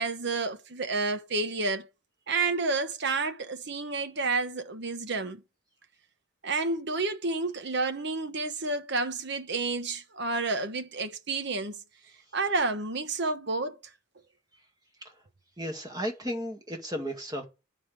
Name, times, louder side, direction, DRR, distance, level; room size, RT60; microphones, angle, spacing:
voice 1, 0.0-1.9 2.3-5.4 6.4-11.8 12.3-13.8, right 3 dB, 55° right, 1.1 m, -30 dB
voice 2, 15.6-17.5, equal, 20° right, 1.9 m, -34 dB
9.1 x 5.0 x 7.7 m
head